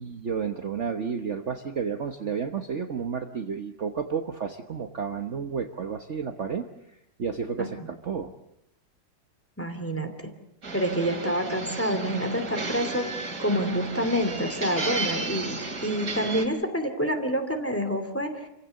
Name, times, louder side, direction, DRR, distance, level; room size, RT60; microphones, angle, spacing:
voice 1, 0.0-6.6 7.2-8.3, right 6 dB, 45° right, 6 dB, 1.3 m, -31 dB
voice 2, 9.6-10.3 10.7-13.1 13.4-18.5, equal, 5° left, 5 dB, 2.7 m, -27 dB
sound 1, 10.6-16.4, right 3 dB, 60° right, 3.3 m, -33 dB
29.5 x 16.0 x 8.3 m, 0.81 s
omnidirectional pair, 1.9 m